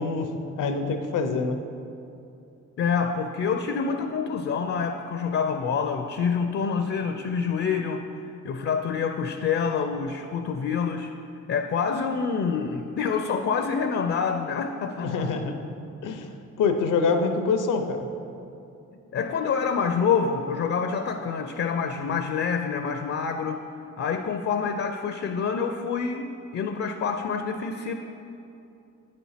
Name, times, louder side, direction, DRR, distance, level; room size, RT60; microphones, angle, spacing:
voice 1, 0.0-1.6 15.0-15.5 16.0-16.3 16.6-18.1, left 4 dB, 90° left, 6 dB, 0.7 m, -25 dB
voice 2, 2.8-8.1 8.4-11.1 11.5-15.3 19.1-23.6 24.0-27.9, left 6 dB, 50° left, 7 dB, 0.4 m, -27 dB
8.9 x 4.3 x 5.6 m, 2.7 s
cardioid pair, 95°, 30 cm